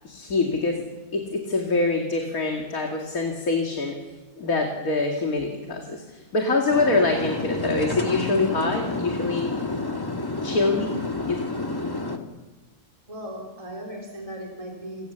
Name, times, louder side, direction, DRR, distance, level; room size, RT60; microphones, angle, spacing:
voice 1, 0.0-0.9 1.1-4.0 4.4-9.5 10.4-10.9 11.3-11.4, left 3 dB, 70° left, 2 dB, 2.8 m, -25 dB
sound 1, 6.7-12.2, left 2 dB, 15° left, 1.5 m, -30 dB
voice 2, 13.1-15.1, equal, 20° right, -1 dB, 3.4 m, -37 dB
29.0 x 18.0 x 7.0 m, 1.3 s
omnidirectional pair, 1.6 m